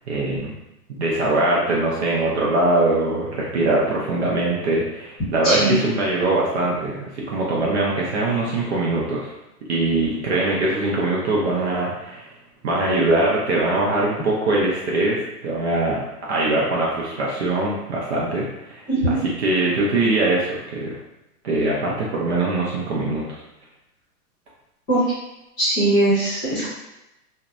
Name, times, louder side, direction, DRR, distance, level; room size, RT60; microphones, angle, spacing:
voice 1, 0.1-0.5 1.0-9.3 9.7-12.3 12.6-20.9 21.4-23.4, right 2 dB, 45° right, -4 dB, 0.5 m, -22 dB
voice 2, 5.4-5.8 18.9-19.2 24.9-25.0 25.6-26.6, right 1 dB, 20° left, -10 dB, 0.8 m, -20 dB
2.6 x 2.1 x 2.3 m, 0.92 s
hypercardioid pair, 155°, 47 cm